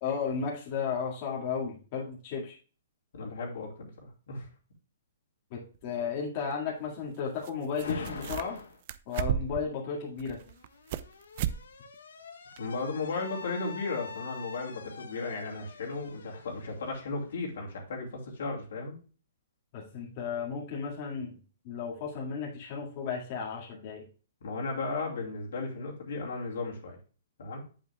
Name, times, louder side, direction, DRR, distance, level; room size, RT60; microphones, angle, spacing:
voice 1, 0.0-2.5 5.5-8.6 9.1-10.4 19.7-21.4 21.6-24.1, left 6 dB, 40° left, -3 dB, 2.0 m, -34 dB
voice 2, 3.1-4.5 12.6-19.0 24.4-27.0 27.4-27.6, left 3 dB, 70° left, -1 dB, 2.6 m, -35 dB
sound 1, 5.7-5.8 7.4-7.5 7.8-8.6 8.9-9.7 10.2-11.1 11.4-11.6 11.9-12.0 12.6-12.7, right 10 dB, 45° right, 0.4 m, -33 dB
Alarm, 7.8-8.8 10.0-17.7, left 5 dB, 90° left, 1.4 m, -45 dB
7.8 x 7.5 x 2.2 m, 0.36 s
hypercardioid pair, 150°, 0 cm